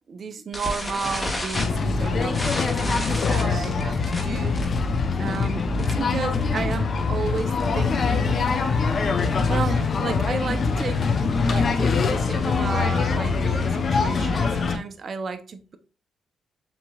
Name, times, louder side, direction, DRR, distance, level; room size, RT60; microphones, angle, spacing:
voice 1, 0.1-4.6 5.2-8.4 9.5-11.2 11.4-15.8, right 5 dB, 45° right, 0.6 m, -32 dB
sound 1, 0.5-6.2 6.4-6.7 7.0-7.1 7.4-7.6 8.1-9.7, left 1 dB, 20° left, 1.3 m, -32 dB
sound 2, 1.5-14.8, left 4 dB, 45° left, 0.6 m, -23 dB
sound 3, 7.4-12.8, equal, 70° left, 1.6 m, -39 dB
7.1 x 2.9 x 2.3 m
cardioid pair, 90°, 0 cm